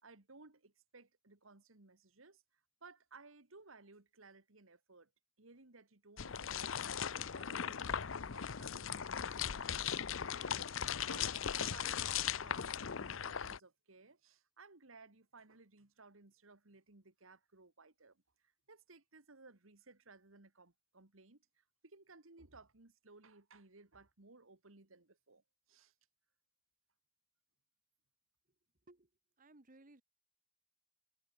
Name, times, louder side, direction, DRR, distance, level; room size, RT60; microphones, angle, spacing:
voice 1, 0.0-2.4 2.8-5.1 5.4-6.8 7.2-10.3 10.9-18.2 18.7-25.4 25.7-25.9, right 3 dB, 80° right, 2.1 m, -60 dB
sound 1, 6.2-13.6, left 8 dB, 70° left, 0.7 m, -38 dB
voice 2, 29.4-30.0, right 2 dB, 40° right, 1.7 m, -61 dB
head